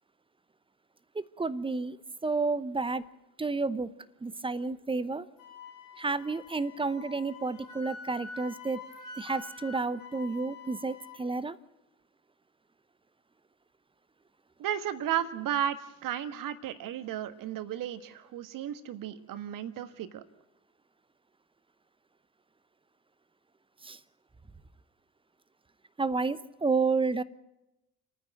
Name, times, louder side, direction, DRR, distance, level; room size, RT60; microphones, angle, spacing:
voice 1, 1.1-2.0 2.2-3.1 3.4-3.9 4.2-5.3 6.0-8.8 9.2-11.6 23.8-24.0 26.0-27.2, right 4 dB, 10° right, 17 dB, 0.8 m, -31 dB
Wind instrument woodwind instrument, 5.4-11.2, left 4 dB, 50° left, 2.7 m, -46 dB
voice 2, 14.6-20.2, right 10 dB, 45° right, 11 dB, 1.6 m, -34 dB
29.0 x 9.9 x 9.1 m, 0.94 s
figure-of-eight pair, 55°, 44 cm